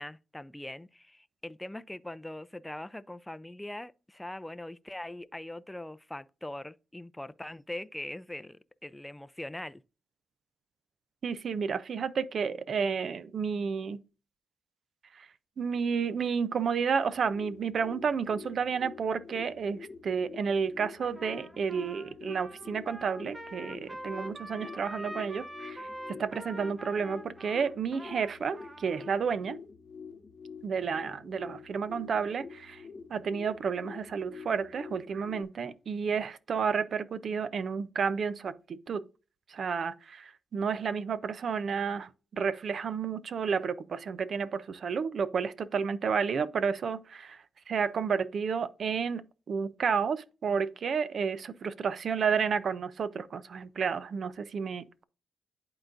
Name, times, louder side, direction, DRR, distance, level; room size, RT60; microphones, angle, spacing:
voice 1, 0.0-9.8, left 1 dB, 10° left, 0.4 m, -42 dB
voice 2, 11.2-14.0 15.2-15.3 15.6-29.6 30.6-32.8 33.1-39.1 39.5-47.4 47.7-55.0, right 6 dB, 60° right, 0.5 m, -31 dB
sound 1, 17.1-35.4, left 6 dB, 45° left, 0.8 m, -47 dB
Trumpet, 21.0-29.3, right 1 dB, 20° right, 1.0 m, -44 dB
11.0 x 3.9 x 2.5 m
cardioid pair, 70°, 0 cm